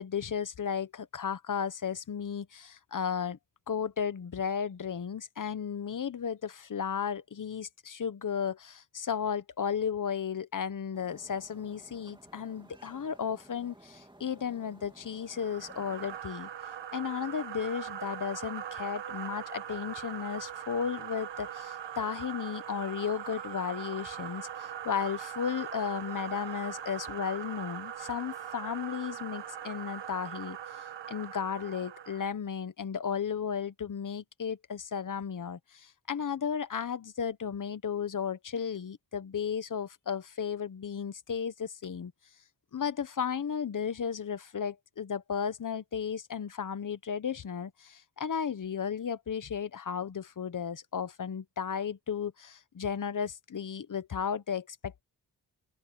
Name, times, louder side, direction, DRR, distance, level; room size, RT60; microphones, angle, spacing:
voice 1, 0.0-3.4 3.7-16.5 16.9-30.6 31.1-42.1 42.7-55.0, left 7 dB, 45° left, 1.1 m, -34 dB
sound 1, 10.9-16.2, right 1 dB, 10° right, 2.5 m, -56 dB
sound 2, 15.3-32.3, right 9 dB, 80° right, 1.8 m, -41 dB
open air
cardioid pair, 90°, 42 cm